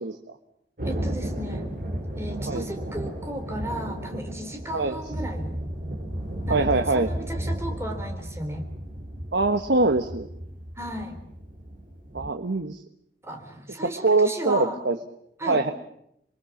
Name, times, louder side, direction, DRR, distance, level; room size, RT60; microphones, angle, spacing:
voice 1, 0.8-1.7 2.1-5.6 6.5-8.6 10.8-11.2 13.2-14.8 15.4-15.6, right 1 dB, 15° right, 4 dB, 3.9 m, -35 dB
Thunder, 0.8-12.3, right 1 dB, 50° right, 5.8 m, -33 dB
voice 2, 6.5-7.1 9.3-10.3 12.1-12.8 13.8-15.0 15.5-15.7, right 3 dB, 85° right, 7 dB, 1.3 m, -23 dB
28.0 x 22.5 x 7.3 m, 0.76 s
head